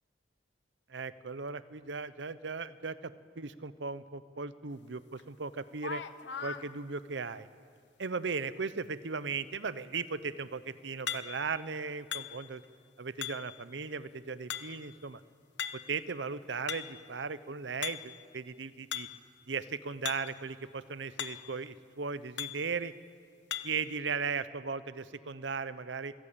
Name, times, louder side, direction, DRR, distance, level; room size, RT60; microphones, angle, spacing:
voice 1, 0.9-5.0 5.3-6.0 6.4-7.5 8.0-12.6 13.0-15.2 15.7-19.1 19.5-22.9 23.6-26.1, right 5 dB, 85° right, 14 dB, 0.8 m, -37 dB
sound 1, 5.2-5.3 5.7-6.7 11.1-11.6 12.1-12.7 13.2-13.6 14.5-15.0 15.6-16.0 16.4-17.1 17.8-18.3 18.9-19.2 20.1-20.4 20.7-20.8 21.2-21.6 22.4-22.7 23.5-23.9, left 9 dB, 75° left, 1.0 m, -39 dB
27.0 x 14.0 x 8.6 m, 2.3 s
head